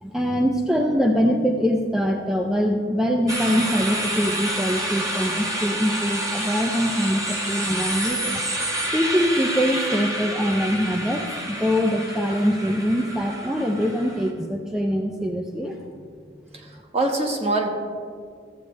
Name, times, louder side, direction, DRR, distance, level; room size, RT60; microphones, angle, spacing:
voice 1, 0.0-8.4 8.9-15.8, equal, 5° right, 2 dB, 0.4 m, -23 dB
sound 1, 3.3-14.3, right 1 dB, 20° right, 1.0 m, -28 dB
voice 2, 16.5-17.7, right 2 dB, 35° right, 2 dB, 1.2 m, -24 dB
13.5 x 8.1 x 3.2 m, 2.1 s
head